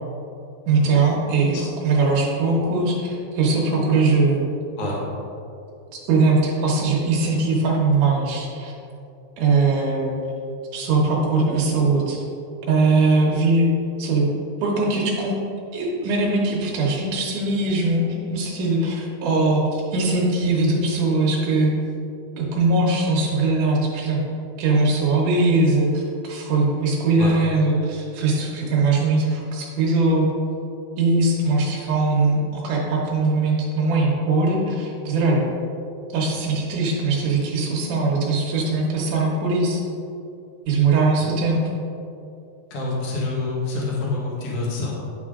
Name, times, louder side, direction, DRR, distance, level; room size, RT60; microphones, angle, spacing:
voice 1, 0.7-4.4 6.1-8.7 9.4-10.1 10.7-12.2 12.7-13.7 14.0-14.3 14.6-15.4 15.7-21.7 22.4-24.2 24.6-30.3 31.0-35.5 36.1-39.8 40.7-41.6, right 3 dB, 75° right, -2 dB, 1.9 m, -21 dB
voice 2, 42.7-44.9, left 3 dB, 75° left, -4 dB, 1.3 m, -27 dB
10.5 x 5.5 x 3.7 m, 2.6 s
omnidirectional pair, 5.1 m